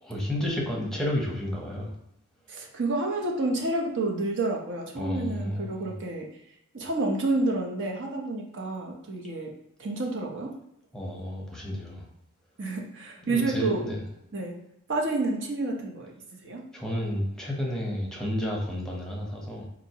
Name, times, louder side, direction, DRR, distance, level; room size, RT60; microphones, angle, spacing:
voice 1, 0.0-1.9 5.0-5.9 10.9-12.0 13.2-14.0 16.7-19.7, left 1 dB, 5° left, -3 dB, 0.8 m, -31 dB
voice 2, 2.5-6.3 6.7-9.5 9.8-10.6 12.6-13.9 14.3-14.6 14.9-16.1 16.4-16.6, right 2 dB, 60° right, 1 dB, 0.8 m, -29 dB
4.3 x 2.6 x 2.8 m, 0.79 s
head